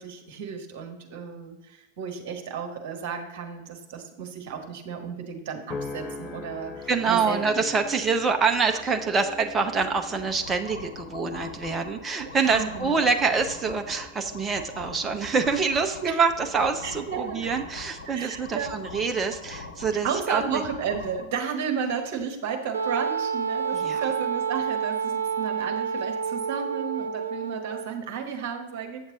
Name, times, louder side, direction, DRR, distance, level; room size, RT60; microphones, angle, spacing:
voice 1, 0.0-7.4 8.7-8.8 12.4-13.1 16.0-16.2 16.8-17.5 18.1-18.8 19.9-29.1, right 7 dB, 50° right, 4 dB, 1.5 m, -33 dB
sound 1, 5.7-20.2 20.7-21.1, left 3 dB, 25° left, 0.8 m, -44 dB
voice 2, 6.9-20.4 23.7-24.0, right 5 dB, 20° right, 6 dB, 0.8 m, -26 dB
sound 2, 9.7-21.2, left 3 dB, 75° left, 1.6 m, -42 dB
Wind instrument woodwind instrument, 22.7-27.9, right 6 dB, 75° right, 0.5 m, -29 dB
8.7 x 7.1 x 3.8 m, 1.0 s
figure-of-eight pair, 90°, 0 cm